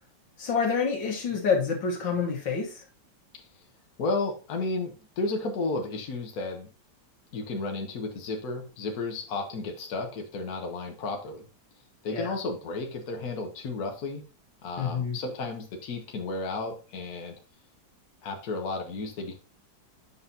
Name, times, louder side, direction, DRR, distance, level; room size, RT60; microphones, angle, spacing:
voice 1, 0.4-2.8 12.1-12.3 14.8-15.2, left 5 dB, 80° left, 1 dB, 2.2 m, -27 dB
voice 2, 4.0-6.7 7.3-11.4 12.0-14.2 14.6-17.4 18.2-19.3, left 3 dB, 55° left, 2 dB, 1.6 m, -33 dB
8.7 x 5.5 x 2.8 m, 0.34 s
omnidirectional pair, 2.0 m